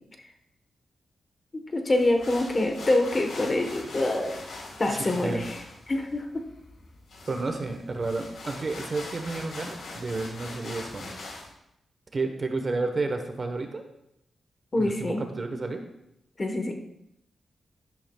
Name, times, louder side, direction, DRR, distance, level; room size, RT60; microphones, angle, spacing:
voice 1, 1.7-4.3 4.8-5.5 5.9-6.3 14.7-15.2 16.4-16.7, left 2 dB, 30° left, 4 dB, 1.1 m, -25 dB
sound 1, 1.9-11.5, left 2 dB, 80° left, 3.5 m, -42 dB
voice 2, 4.9-5.5 7.3-11.2 12.1-13.8 14.7-15.8, right 3 dB, 35° right, 5 dB, 1.0 m, -31 dB
12.0 x 11.5 x 2.3 m, 0.80 s
wide cardioid pair, 135°, 0 cm